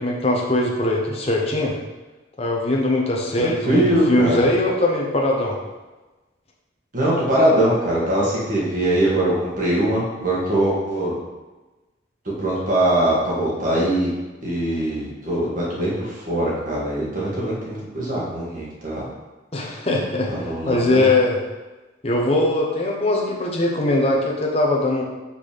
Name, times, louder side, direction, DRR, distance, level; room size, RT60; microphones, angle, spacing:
voice 1, 0.0-1.7 2.4-5.6 19.5-21.4 22.0-25.0, left 2 dB, 35° left, -2 dB, 1.1 m, -21 dB
voice 2, 3.4-4.5 6.9-11.2 12.4-14.1 14.4-19.0 20.3-21.1, right 1 dB, 45° right, -6 dB, 1.8 m, -22 dB
5.6 x 4.3 x 5.1 m, 1.2 s
head